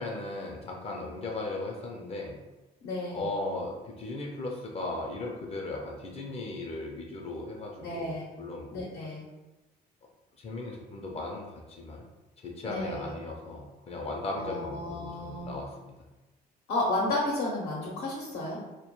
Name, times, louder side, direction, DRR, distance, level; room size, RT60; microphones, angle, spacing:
voice 1, 0.0-2.4 3.1-8.9 10.4-12.1 12.4-16.0, left 2 dB, 35° left, 0 dB, 0.4 m, -37 dB
voice 2, 2.8-3.3 7.8-8.3 8.7-9.2 12.6-13.2 14.3-15.5 16.7-18.6, left 2 dB, 75° left, -4 dB, 0.6 m, -32 dB
2.1 x 2.1 x 2.9 m, 1.1 s
cardioid pair, 110°, 17 cm